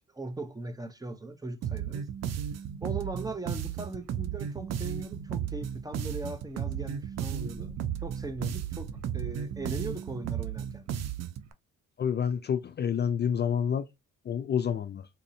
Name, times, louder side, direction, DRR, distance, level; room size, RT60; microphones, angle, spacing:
voice 1, 0.1-2.1 2.8-7.7 8.0-10.9, right 2 dB, 10° right, 0.6 m, -39 dB
sound 1, 1.6-11.5, right 9 dB, 60° right, 0.6 m, -34 dB
sound 2, 4.0-9.8, right 4 dB, 85° right, 0.8 m, -49 dB
voice 2, 12.0-13.9 14.3-15.1, left 8 dB, 35° left, 0.4 m, -28 dB
4.0 x 2.6 x 2.6 m
cardioid pair, 90°, 30 cm